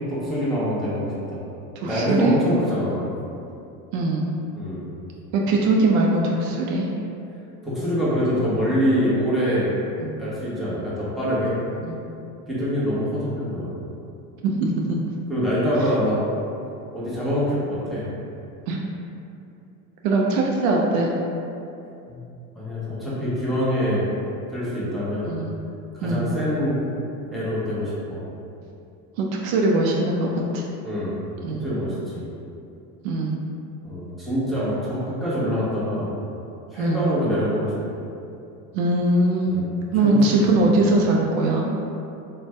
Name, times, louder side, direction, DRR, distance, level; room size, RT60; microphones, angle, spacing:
voice 1, 0.1-1.4 1.9-3.0 4.5-4.8 7.6-9.7 10.2-11.6 12.5-13.7 15.3-16.2 16.9-18.1 22.1-22.2 22.5-24.1 24.5-25.3 25.9-26.8 27.3-28.2 30.8-31.2 31.5-32.3 33.8-36.1 36.7-38.0 39.5-39.7 40.0-40.2 40.5-40.6, equal, ahead, -10 dB, 1.0 m, -25 dB
voice 2, 1.8-2.3 3.9-4.3 5.3-6.9 10.0-10.2 11.8-12.0 14.4-15.0 18.7-18.8 20.0-21.1 25.2-25.5 26.0-26.3 29.2-30.6 31.4-31.6 33.0-33.4 36.8-37.0 38.7-39.6 39.9-41.6, right 2 dB, 70° right, -1 dB, 0.5 m, -21 dB
2.5 x 2.2 x 3.3 m, 2.7 s
hypercardioid pair, 85°, 45 cm